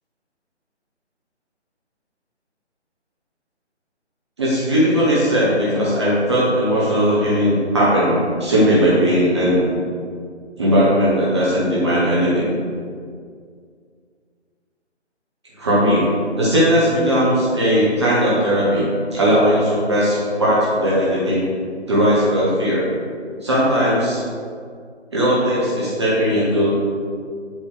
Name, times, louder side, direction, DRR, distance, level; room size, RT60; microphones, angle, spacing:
voice 1, 4.4-9.6 10.6-12.5 15.6-21.4 21.9-22.8 23.4-24.2 25.1-26.7, equal, 25° right, -8 dB, 0.9 m, -18 dB
7.5 x 3.1 x 4.8 m, 2.1 s
figure-of-eight pair, 150°, 35 cm